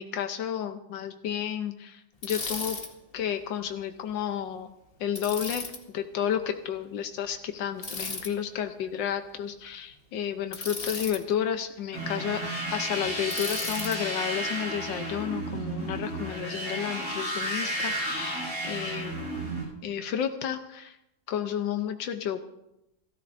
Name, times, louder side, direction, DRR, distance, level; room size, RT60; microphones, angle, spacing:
voice 1, 0.0-2.8 3.1-4.7 5.0-5.7 5.9-12.4 12.7-19.1 19.8-21.0 21.3-22.4, left 9 dB, 90° left, 6 dB, 1.6 m, -31 dB
Bicycle, 2.2-2.9 5.2-5.8 7.8-8.3 10.5-11.2 13.3-14.0, left 3 dB, 30° left, 2.0 m, -35 dB
sound 1, 11.9-19.6, right 1 dB, 65° right, 7.9 m, -32 dB
29.5 x 13.5 x 2.6 m, 0.88 s
omnidirectional pair, 1.9 m